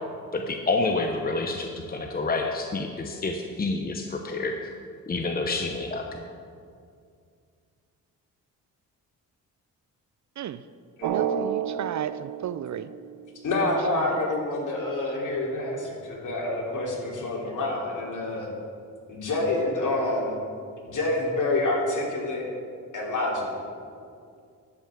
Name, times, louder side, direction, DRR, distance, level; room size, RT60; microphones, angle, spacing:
voice 1, 0.3-4.6 5.1-6.2, left 3 dB, 25° left, 3 dB, 0.9 m, -28 dB
voice 2, 11.0-12.9 13.9-14.1, right 10 dB, 50° right, 14 dB, 0.5 m, -34 dB
Drum, 11.0-13.6, right 8 dB, 85° right, 0.9 m, -31 dB
voice 3, 13.4-18.5 19.1-20.4 20.9-22.4 22.9-23.7, left 2 dB, 55° left, -2 dB, 3.1 m, -27 dB
12.0 x 5.6 x 7.6 m, 2.3 s
cardioid pair, 75°, 36 cm